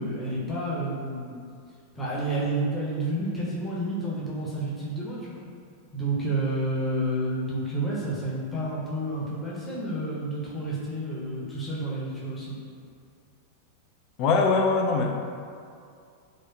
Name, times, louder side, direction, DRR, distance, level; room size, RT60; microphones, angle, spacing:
voice 1, 0.0-1.4 2.0-5.4 5.9-12.5, right 1 dB, 15° left, -7 dB, 0.7 m, -30 dB
voice 2, 14.2-15.1, left 4 dB, 40° left, 2 dB, 0.3 m, -22 dB
3.6 x 2.2 x 2.2 m, 2.3 s
figure-of-eight pair, 90°, 0 cm